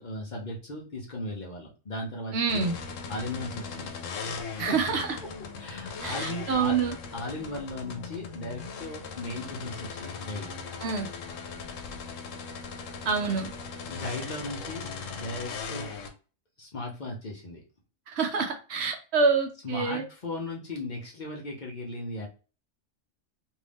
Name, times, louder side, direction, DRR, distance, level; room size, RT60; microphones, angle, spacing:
voice 1, 0.0-2.6 3.1-3.9 4.5-4.8 5.6-6.8 7.1-10.5 13.9-14.9 15.2-15.9 16.6-17.6 19.6-22.3, left 2 dB, 45° left, -1 dB, 0.7 m, -37 dB
voice 2, 2.3-2.7 4.6-5.2 6.0-6.9 10.8-11.1 13.0-13.5 18.1-20.0, right 5 dB, 65° right, 5 dB, 0.8 m, -27 dB
sound 1, 2.5-16.1, left 5 dB, 85° left, 1.0 m, -38 dB
2.7 x 2.5 x 3.3 m, 0.36 s
omnidirectional pair, 1.3 m